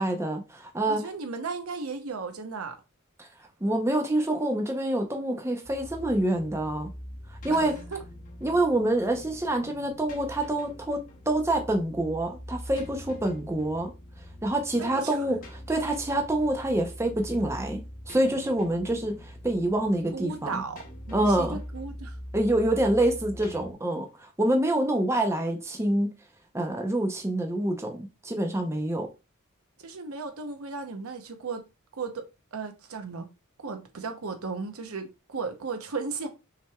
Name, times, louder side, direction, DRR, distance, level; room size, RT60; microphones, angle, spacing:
voice 1, 0.0-1.1 3.2-3.3 3.6-6.9 7.4-7.8 8.4-13.9 14.4-20.6 21.1-21.6 22.3-26.1 26.5-29.1, right 1 dB, 15° right, 0.6 m, -26 dB
voice 2, 0.9-2.8 7.5-7.6 7.9-8.0 14.8-15.3 20.1-20.8 21.1-22.2 29.8-31.6 31.9-32.3 32.5-33.3 33.6-36.3, right 4 dB, 85° right, 0.8 m, -35 dB
sound 1, 5.6-23.7, equal, 40° left, 0.9 m, -43 dB
5.7 x 3.3 x 2.3 m
head